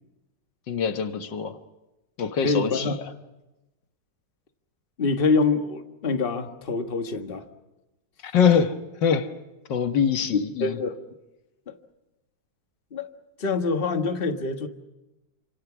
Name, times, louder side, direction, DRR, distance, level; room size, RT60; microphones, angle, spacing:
voice 1, 0.7-1.6 2.2-2.9 8.2-9.3 9.7-10.8, left 7 dB, 80° left, 2.0 m, -24 dB
voice 2, 2.4-2.9 5.0-7.4 10.3-10.9 11.7-11.8 12.9-13.1 13.4-14.7, left 4 dB, 30° left, 1.6 m, -25 dB
27.5 x 27.0 x 6.1 m
omnidirectional pair, 1.9 m